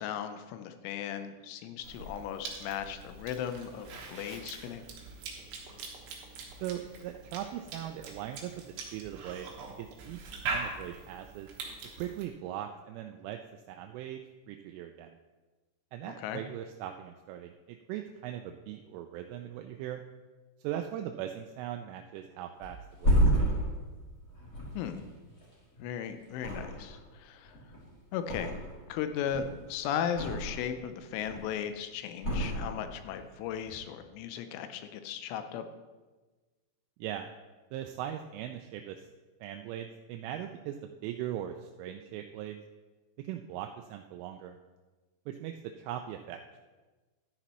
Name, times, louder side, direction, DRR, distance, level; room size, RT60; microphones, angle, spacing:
voice 1, 0.0-4.9 16.0-16.4 24.7-25.0 25.8-27.5 28.1-28.6 28.9-35.7, left 8 dB, 85° left, 9 dB, 3.1 m, -36 dB
Cough / Chewing mastication, 1.8-12.3, right 4 dB, 70° right, 3.3 m, -42 dB
voice 2, 6.6-8.5 8.9-9.5 9.8-10.2 10.5-11.5 12.0-15.2 15.9-20.0 20.6-23.6 37.0-37.3 37.7-39.1 39.4-42.6 43.2-44.6 45.3-46.4, right 11 dB, 85° right, 4 dB, 3.0 m, -40 dB
Thump thud, 22.6-25.9 26.3-27.1 27.4-28.9 29.2-30.7 31.1-31.6 32.2-33.2 33.5-33.7, right 1 dB, 25° left, 2.1 m, -31 dB
12.5 x 9.9 x 3.0 m, 1.3 s
omnidirectional pair, 5.6 m